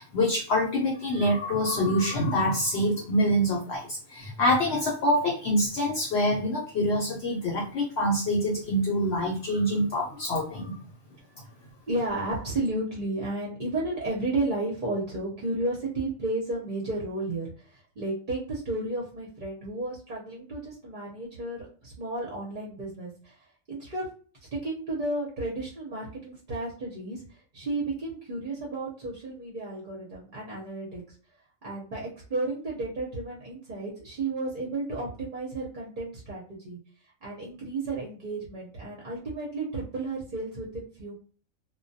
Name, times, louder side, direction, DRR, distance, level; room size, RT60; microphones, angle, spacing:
voice 1, 0.0-10.7, equal, 60° left, -2 dB, 0.8 m, -26 dB
voice 2, 11.9-24.1 24.5-31.0 31.6-36.8 37.2-41.1, right 2 dB, 45° right, -3 dB, 0.7 m, -33 dB
2.2 x 2.2 x 2.6 m, 0.41 s
omnidirectional pair, 1.4 m